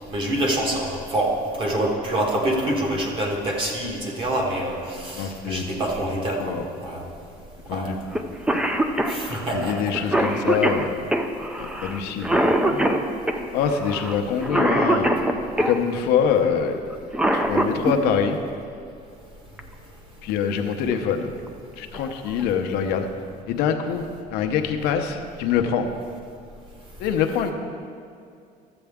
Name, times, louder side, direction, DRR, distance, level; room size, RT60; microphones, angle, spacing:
voice 1, 0.0-6.5 6.8-7.0 7.7-7.9 9.1-9.8 10.3-10.4, right 1 dB, 30° right, 0 dB, 1.4 m, -26 dB
voice 2, 5.2-5.7 6.4-6.6 7.7-8.2 8.5-8.7 9.5-11.0 11.4-13.0 13.5-15.1 15.6-16.8 17.3-18.4 20.2-21.4 21.8-23.1 23.5-25.9 27.0-27.5, left 7 dB, 85° left, 5 dB, 0.7 m, -25 dB
Cough, 8.1-8.2 8.5-15.8 16.9-18.0 19.6-19.7 20.7-21.0 21.5-21.6 21.9-22.4, right 1 dB, 5° right, 0.4 m, -23 dB
13.0 x 7.8 x 3.6 m, 2.4 s
cardioid pair, 160°, 17 cm